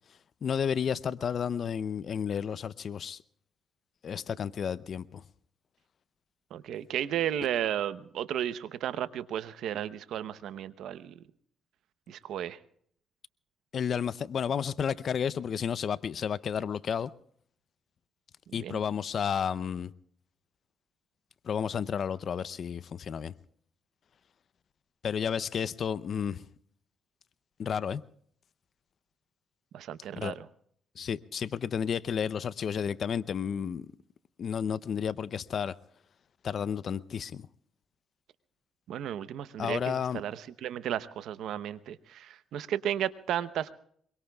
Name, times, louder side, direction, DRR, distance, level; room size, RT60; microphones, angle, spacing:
voice 1, 0.4-3.2 4.0-5.2 13.7-17.1 18.5-19.9 21.4-23.3 25.0-26.4 27.6-28.0 30.2-30.4 31.0-33.9 34.4-35.7 36.4-37.5 39.6-40.2, left 7 dB, 55° left, 0.6 m, -32 dB
voice 2, 6.5-11.2 12.1-12.6 18.5-18.8 29.7-30.5 38.9-43.7, right 10 dB, 80° right, 0.8 m, -34 dB
25.5 x 23.5 x 2.3 m
cardioid pair, 90°, 0 cm